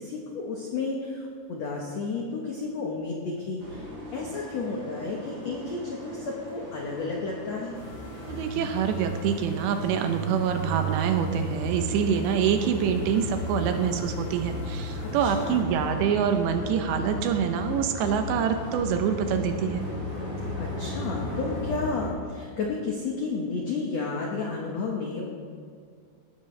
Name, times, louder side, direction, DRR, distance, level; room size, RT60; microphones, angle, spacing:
voice 1, 0.0-3.8 4.1-7.8 15.0-15.6 20.5-25.3, left 4 dB, 70° left, -1 dB, 1.6 m, -32 dB
sound 1, 3.6-21.6, equal, 30° right, 4.2 m, -42 dB
sound 2, 7.7-15.6, right 2 dB, 85° left, 6.0 m, -35 dB
voice 2, 8.3-19.8, right 8 dB, 85° right, 6 dB, 3.0 m, -26 dB
sound 3, 12.7-22.1, left 3 dB, 15° left, 2.8 m, -35 dB
17.5 x 13.0 x 3.3 m, 2.2 s
omnidirectional pair, 5.0 m